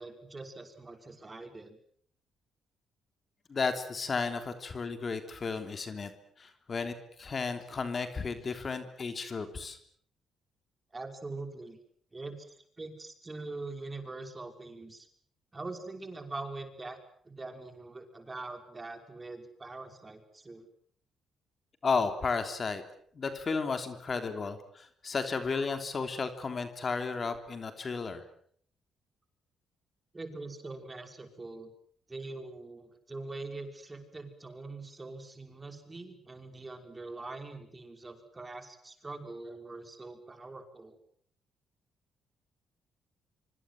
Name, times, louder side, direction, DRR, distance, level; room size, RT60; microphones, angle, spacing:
voice 1, 0.0-1.8 10.9-11.8 12.1-15.1 15.5-20.7 30.1-31.7 32.1-41.0, right 3 dB, 20° right, 6 dB, 5.6 m, -43 dB
voice 2, 3.5-6.1 6.4-9.8 21.8-22.8 23.1-28.2, left 4 dB, 40° left, 8 dB, 3.3 m, -33 dB
25.5 x 25.0 x 7.8 m, 0.62 s
cardioid pair, 90°, 0 cm